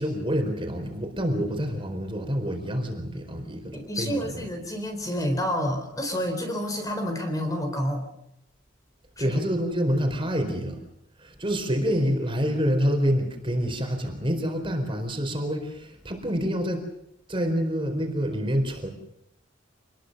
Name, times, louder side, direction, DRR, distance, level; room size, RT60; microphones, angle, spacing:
voice 1, 0.0-4.5 9.2-10.8 11.2-16.8 17.3-18.9, equal, 25° right, 5 dB, 4.4 m, -27 dB
voice 2, 3.7-8.1 9.2-9.4, equal, 20° left, 5 dB, 4.2 m, -29 dB
27.5 x 21.0 x 6.8 m, 0.79 s
head